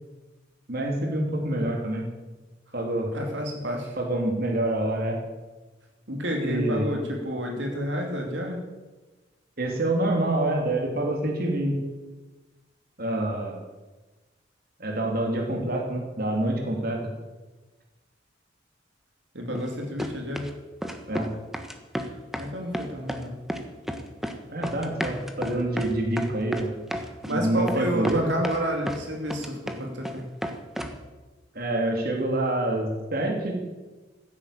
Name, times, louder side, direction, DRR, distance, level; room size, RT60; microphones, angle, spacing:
voice 1, 0.7-2.1 2.7-3.1 4.0-5.2 6.4-6.9 9.6-11.8 13.0-13.6 14.8-17.0 21.1-21.3 24.5-26.7 27.3-28.3 31.5-33.6, right 1 dB, 55° right, 1 dB, 3.2 m, -26 dB
voice 2, 3.1-3.9 6.1-8.6 19.3-20.5 22.4-23.3 27.3-30.3, equal, 80° right, 1 dB, 3.0 m, -30 dB
sound 1, 19.5-19.7 20.0-20.5 20.8-21.3 21.5-22.5 22.7-23.2 23.5-24.4 24.6-27.3 27.7-27.8 28.0-29.0 29.3-30.1 30.4-31.0, equal, ahead, 1.3 m, -32 dB
15.0 x 10.5 x 8.7 m, 1.2 s
head